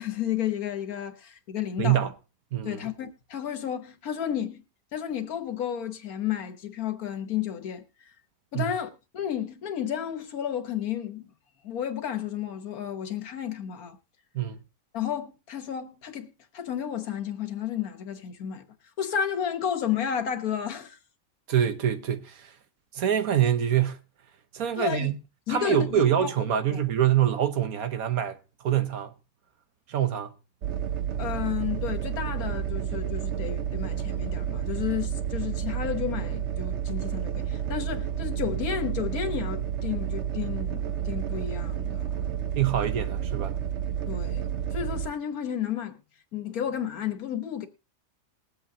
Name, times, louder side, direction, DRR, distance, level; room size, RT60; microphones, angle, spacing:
voice 1, 0.0-2.1 2.6-4.6 4.9-7.8 8.5-11.3 11.6-14.0 14.9-18.6 19.0-21.0 24.8-25.1 25.5-26.3 26.7-26.8 31.2-42.1 44.1-44.5 44.7-46.0 46.3-47.7, left 9 dB, 75° left, 1.6 m, -32 dB
voice 2, 1.8-2.1 2.5-2.8 8.5-8.7 14.3-14.6 21.5-22.5 22.9-24.0 24.5-25.2 25.5-28.4 28.6-29.1 29.9-30.3 42.5-43.5, right 10 dB, 75° right, 1.5 m, -25 dB
sound 1, 30.6-45.1, right 9 dB, 55° right, 1.0 m, -30 dB
20.5 x 8.2 x 2.7 m
omnidirectional pair, 1.5 m